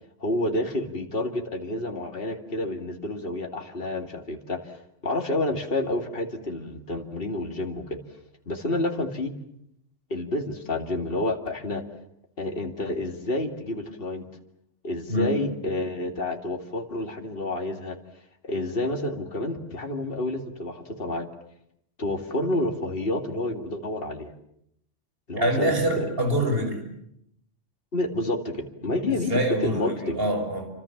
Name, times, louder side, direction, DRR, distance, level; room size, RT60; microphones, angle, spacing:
voice 1, 0.2-4.8 5.0-8.0 8.5-9.3 10.1-11.8 12.4-14.3 14.8-18.0 18.4-21.3 22.0-24.3 25.3-26.1 27.9-30.2, left 1 dB, 50° left, 5 dB, 2.6 m, -29 dB
voice 2, 25.4-26.8 29.3-30.7, right 1 dB, 50° right, 5 dB, 6.0 m, -25 dB
29.0 x 25.5 x 7.2 m, 0.74 s
omnidirectional pair, 1.2 m